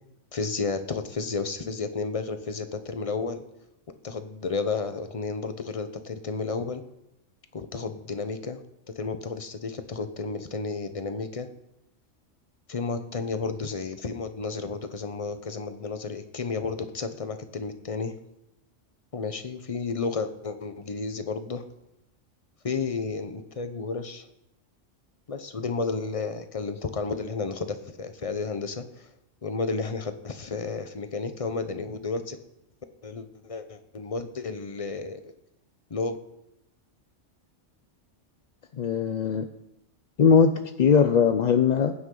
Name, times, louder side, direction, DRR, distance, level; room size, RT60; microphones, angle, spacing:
voice 1, 0.3-3.4 3.9-6.8 7.5-8.6 8.9-11.5 12.7-18.1 19.1-21.6 22.6-24.3 25.3-29.1 29.4-32.4 33.0-35.3 35.9-36.2, left 4 dB, 30° left, 9 dB, 0.8 m, -32 dB
voice 2, 38.8-39.5 40.2-40.5 40.8-41.9, left 6 dB, 55° left, 8 dB, 0.5 m, -20 dB
20.0 x 9.3 x 3.9 m, 0.87 s
omnidirectional pair, 1.3 m